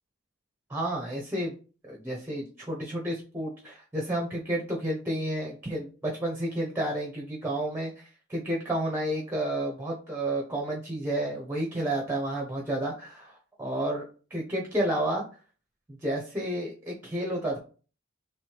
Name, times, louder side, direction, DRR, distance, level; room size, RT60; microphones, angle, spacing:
voice 1, 0.7-1.5 1.8-15.2 15.9-17.6, right 1 dB, 10° right, -1 dB, 0.7 m, -31 dB
3.2 x 3.1 x 4.6 m, 0.37 s
head